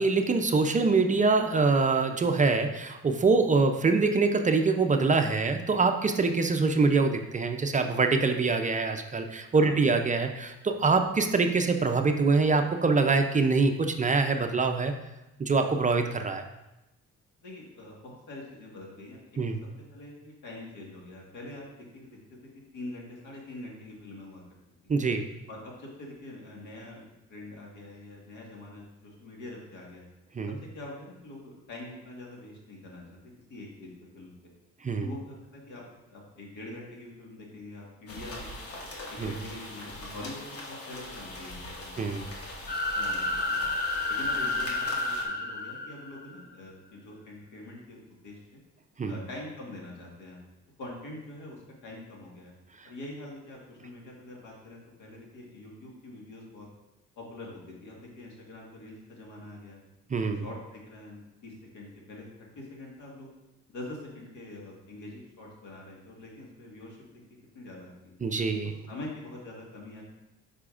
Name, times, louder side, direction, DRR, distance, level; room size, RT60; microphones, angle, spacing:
voice 1, 0.0-14.9 15.4-16.4 19.4-19.6 24.9-25.3 30.3-30.6 34.8-35.1 39.2-39.3 42.0-42.2 49.0-49.2 52.8-52.9 60.1-60.4 68.2-68.7, right 4 dB, 25° right, 6 dB, 0.4 m, -24 dB
voice 2, 9.5-9.8 17.4-19.4 19.9-21.6 21.9-22.2 22.7-24.4 24.8-24.9 25.5-30.1 30.7-33.2 33.5-34.3 35.0-35.8 36.1-38.5 39.1-42.3 42.9-43.7 44.1-48.6 49.1-50.4 50.8-52.5 52.8-56.7 57.2-59.8 60.2-63.3 63.7-67.0 67.5-68.2 68.6-70.0, left 2 dB, 80° left, -2 dB, 1.7 m, -44 dB
sound 1, 38.1-45.2, left 1 dB, 50° left, 1.2 m, -41 dB
sound 2, 42.7-46.4, left 2 dB, 30° left, 1.0 m, -30 dB
8.3 x 5.0 x 2.5 m, 0.96 s
cardioid pair, 90°, 30 cm